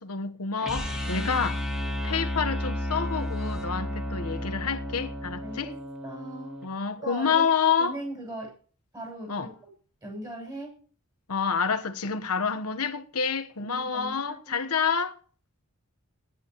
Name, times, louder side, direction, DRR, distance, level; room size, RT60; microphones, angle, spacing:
voice 1, 0.0-1.6 2.0-5.7 6.6-8.0 9.3-9.5 11.3-15.1, left 6 dB, 80° left, 1.2 m, -28 dB
sound 1, 0.6-6.7, left 1 dB, ahead, 2.5 m, -32 dB
voice 2, 1.1-1.5 3.8-4.0 5.4-6.6 6.9-7.5 7.8-8.5 8.9-9.7 10.0-10.8 13.6-14.2 14.5-14.7, right 1 dB, 20° right, 6.8 m, -39 dB
17.0 x 10.5 x 3.0 m
head